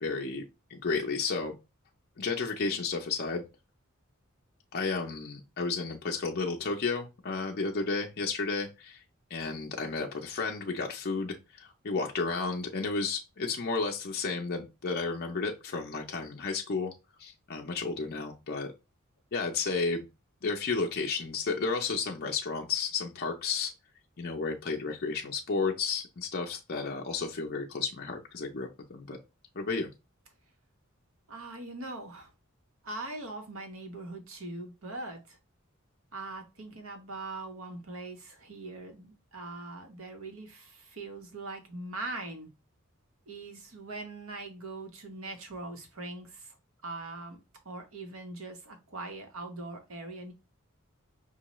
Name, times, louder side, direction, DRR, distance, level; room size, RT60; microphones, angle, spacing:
voice 1, 0.0-0.4 0.7-1.6 2.2-3.4 4.7-9.0 9.3-16.9 17.2-18.7 19.3-20.0 20.4-23.7 24.2-29.2 29.6-29.9, left 4 dB, 50° left, 0.5 m, -32 dB
voice 2, 31.3-32.3 32.8-35.4 36.1-42.5 43.3-46.5 46.8-50.3, right 2 dB, 80° right, 1.0 m, -41 dB
5.5 x 2.2 x 3.0 m
head